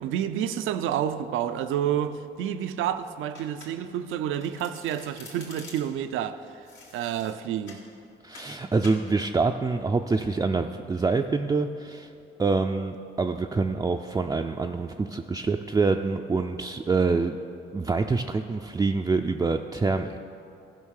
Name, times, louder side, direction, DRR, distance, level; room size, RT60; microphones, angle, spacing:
voice 1, 0.0-6.4 6.9-7.8, right 10 dB, 85° right, 0.5 m, -29 dB
Domestic sounds home sounds, 3.3-4.0 4.3-6.1 6.7-7.9 8.3-8.5 8.8-9.1, left 3 dB, 80° left, 2.4 m, -47 dB
voice 2, 8.2-12.1 12.4-17.4 17.7-20.2, right 4 dB, 15° right, 0.4 m, -26 dB
14.5 x 5.4 x 6.5 m
cardioid pair, 90°, 20 cm